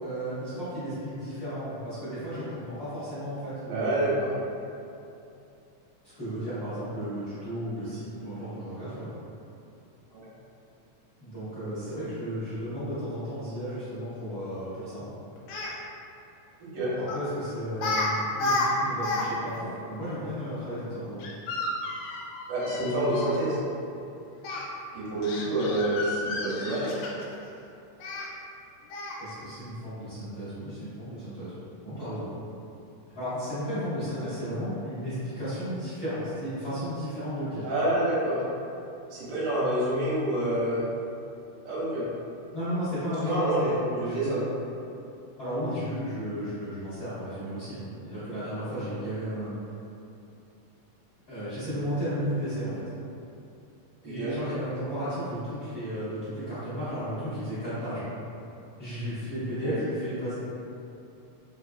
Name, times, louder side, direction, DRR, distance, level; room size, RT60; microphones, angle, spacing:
voice 1, 0.0-4.3 6.0-9.1 11.2-15.0 16.7-18.1 18.4-21.3 29.2-31.5 31.8-32.3 33.1-37.7 42.5-44.3 45.4-49.6 51.3-52.8 54.0-58.1 58.8-60.3, equal, 45° left, -16 dB, 1.4 m, -34 dB
voice 2, 3.7-4.3 10.1-10.2 16.7-17.0 22.5-23.6 24.9-26.9 37.6-38.4 39.1-40.8 41.7-42.1 43.2-44.4 54.0-54.4 59.6-59.7, right 1 dB, 85° right, -7 dB, 2.4 m, -27 dB
Speech, 15.4-15.7 17.1-17.3 17.8-18.1 18.3-19.3 19.5-19.6 21.2-23.4 24.4-24.6 25.2-27.4 28.0-28.3 28.9-29.3, left 2 dB, 80° left, 1.7 m, -31 dB
4.9 x 2.7 x 2.4 m, 2.7 s
omnidirectional pair, 3.7 m